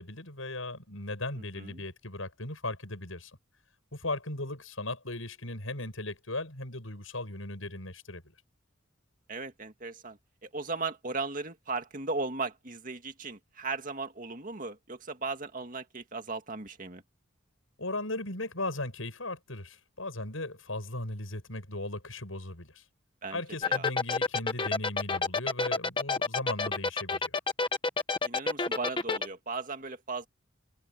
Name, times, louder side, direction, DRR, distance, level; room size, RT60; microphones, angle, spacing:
voice 1, 0.0-3.3 3.9-8.3 17.8-22.8 23.3-27.4, left 2 dB, 80° left, 7.9 m, -37 dB
voice 2, 9.3-17.0 23.2-23.9 28.2-30.3, right 3 dB, 40° right, 2.2 m, -37 dB
sound 1, 23.6-29.3, left 4 dB, 25° left, 1.3 m, -28 dB
head